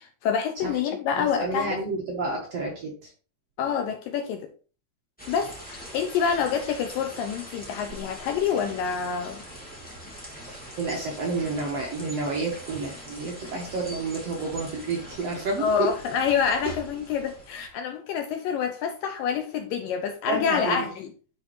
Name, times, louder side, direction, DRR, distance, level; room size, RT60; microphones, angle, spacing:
voice 1, 0.0-1.8 3.6-4.5 5.3-9.4 15.6-21.1, left 7 dB, 80° left, 6 dB, 2.1 m, -27 dB
voice 2, 1.1-3.1 10.5-15.9 20.3-20.9, right 3 dB, 60° right, -1 dB, 1.8 m, -30 dB
sound 1, 5.2-17.7, equal, 5° left, 1.3 m, -42 dB
10.0 x 4.3 x 3.2 m, 0.37 s
omnidirectional pair, 4.5 m